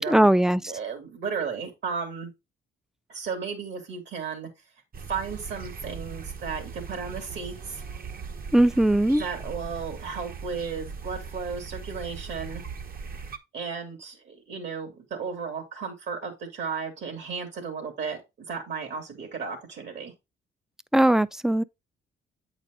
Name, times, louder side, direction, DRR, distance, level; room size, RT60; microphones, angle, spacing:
voice 1, 0.1-0.6 8.5-9.2 20.9-21.6, right 1 dB, ahead, 0.4 m, -19 dB
voice 2, 0.7-2.3 3.1-4.5 5.1-7.8 9.2-12.6 13.5-18.2 18.5-20.1, right 5 dB, 65° right, 2.9 m, -34 dB
sound 1, 4.9-13.4, right 5 dB, 50° right, 1.1 m, -39 dB
8.3 x 4.9 x 3.9 m
cardioid pair, 90°, 20 cm